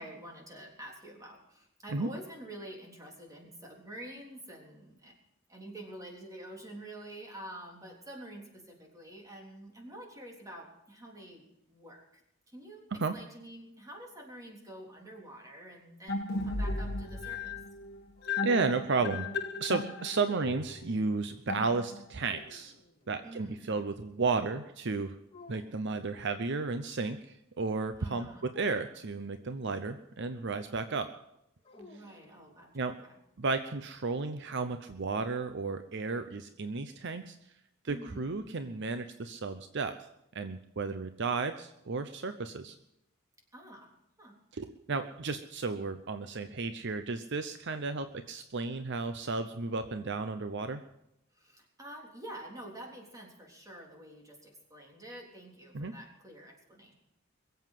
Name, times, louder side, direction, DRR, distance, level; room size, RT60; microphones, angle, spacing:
voice 1, 0.0-5.1 5.5-12.2 12.5-17.5 23.2-23.7 28.0-28.5 31.7-33.1 37.9-38.3 43.5-43.9 44.2-44.4 51.3-56.9, right 1 dB, 15° right, 0 dB, 3.6 m, -48 dB
sound 1, 16.1-22.3, left 3 dB, 55° left, 1.6 m, -36 dB
sound 2, 17.9-19.8 22.2-23.5 25.3-26.1 28.5-29.6 31.6-32.8, left 3 dB, 25° left, 2.1 m, -57 dB
voice 2, 18.4-19.3 19.6-22.7 23.1-25.2 25.5-31.1 32.7-33.0 33.4-37.4 37.8-40.0 40.3-42.8 44.5-50.8 55.7-55.9, right 4 dB, 60° right, 9 dB, 0.8 m, -33 dB
22.0 x 8.0 x 7.5 m, 0.81 s
head